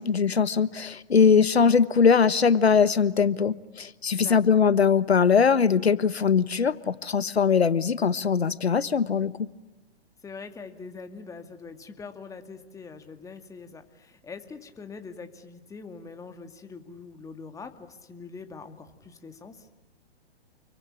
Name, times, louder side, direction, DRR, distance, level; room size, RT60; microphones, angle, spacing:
voice 1, 0.0-9.3, left 6 dB, 85° left, 16 dB, 1.4 m, -21 dB
voice 2, 4.1-4.6 10.2-19.7, left 4 dB, 10° left, 7 dB, 2.2 m, -43 dB
29.0 x 23.5 x 8.7 m, 1.1 s
hypercardioid pair, 125°, 31 cm